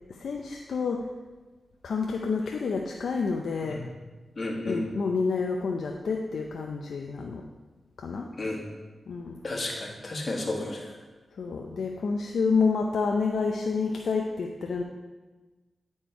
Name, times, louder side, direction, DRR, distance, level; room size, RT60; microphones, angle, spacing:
voice 1, 0.1-1.1 1.8-3.8 4.6-7.5 8.0-8.3 9.1-9.4 11.4-14.8, left 4 dB, 80° left, 2 dB, 0.5 m, -29 dB
voice 2, 4.4-4.8 8.4-8.6 9.4-10.9, left 2 dB, 50° left, 0 dB, 1.6 m, -32 dB
9.1 x 4.4 x 4.5 m, 1.2 s
cardioid pair, 55°, 0 cm